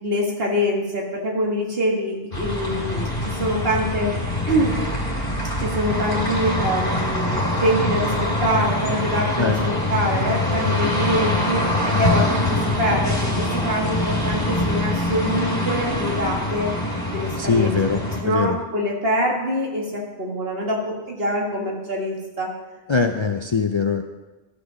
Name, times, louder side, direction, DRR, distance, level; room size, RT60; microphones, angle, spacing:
voice 1, 0.0-4.1 4.5-4.8 5.6-11.7 12.0-16.7 17.1-17.8 18.1-22.5, equal, 70° right, -1 dB, 2.0 m, -24 dB
sound 1, 2.3-18.2, left 1 dB, 60° left, 2.3 m, -24 dB
voice 2, 9.4-9.7 17.4-18.6 22.9-24.0, left 5 dB, 40° left, 4 dB, 0.4 m, -22 dB
13.5 x 5.0 x 6.2 m, 1.1 s
omnidirectional pair, 1.1 m